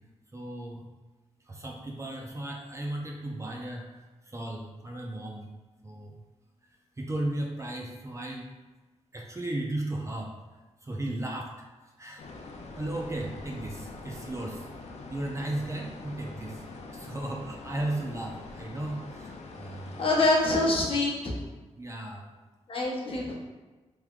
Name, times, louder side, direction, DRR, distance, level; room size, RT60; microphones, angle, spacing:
voice 1, 0.3-0.9 1.5-5.4 5.8-6.2 7.0-8.5 9.1-10.3 10.8-11.5 12.0-12.2 12.8-14.7 15.1-16.6 16.9-20.0 21.8-22.3, right 1 dB, 25° right, 0 dB, 0.5 m, -35 dB
sound 1, 12.2-20.3, left 3 dB, 70° left, 0.4 m, -44 dB
voice 2, 20.0-21.3 22.7-23.3, left 2 dB, 50° left, -3 dB, 0.9 m, -25 dB
3.4 x 3.1 x 2.4 m, 1.2 s
cardioid pair, 70°, 12 cm